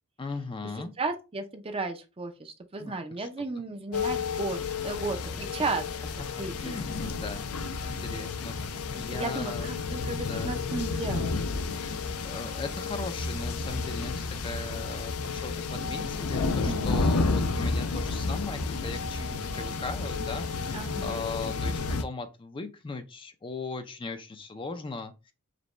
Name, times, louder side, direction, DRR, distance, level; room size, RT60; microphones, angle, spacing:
voice 1, 0.2-0.9 2.8-3.3 6.6-7.5 8.0-10.6 11.6-12.0 12.2-25.3, left 3 dB, 25° left, 0.4 m, -39 dB
voice 2, 1.0-5.8 6.4-6.8 8.7-8.8 9.1-11.4 16.6-17.0 20.7-21.2, right 3 dB, 25° right, 0.6 m, -34 dB
sound 1, 3.9-22.0, left 4 dB, 80° left, 0.6 m, -31 dB
5.0 x 2.2 x 3.2 m
head